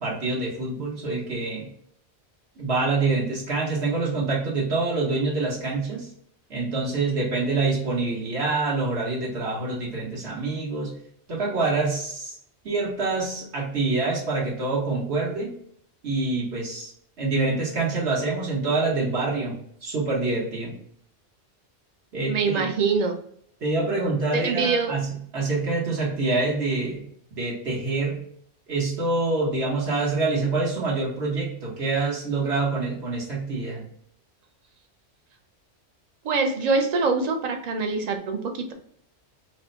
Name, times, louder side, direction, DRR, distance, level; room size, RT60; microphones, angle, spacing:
voice 1, 0.0-1.7 2.6-6.1 6.5-10.9 11.3-12.4 12.6-15.5 16.0-16.9 17.2-20.7 22.1-22.7 23.6-27.1 27.4-28.2 28.7-33.8, right 3 dB, 70° right, -4 dB, 1.6 m, -26 dB
voice 2, 22.3-23.2 24.3-25.0 36.2-38.7, right 4 dB, 45° right, 5 dB, 0.6 m, -24 dB
4.3 x 2.2 x 3.9 m, 0.66 s
omnidirectional pair, 1.1 m